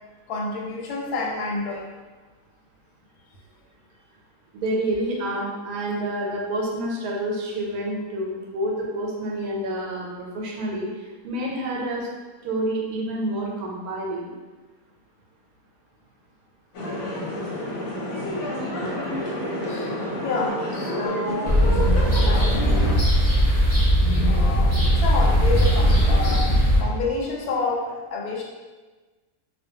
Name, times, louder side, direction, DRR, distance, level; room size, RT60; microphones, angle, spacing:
voice 1, 0.3-1.9 19.7-21.6 22.0-22.7 24.3-28.4, left 3 dB, 90° left, -1 dB, 1.1 m, -29 dB
voice 2, 4.5-12.1 12.4-14.3, right 1 dB, 80° right, -2 dB, 1.1 m, -28 dB
sound 1, 16.7-22.9, equal, 65° left, 0.9 m, -29 dB
sound 2, 21.5-26.8, equal, 40° left, 0.7 m, -19 dB
2.5 x 2.2 x 2.7 m, 1.3 s
omnidirectional pair, 1.5 m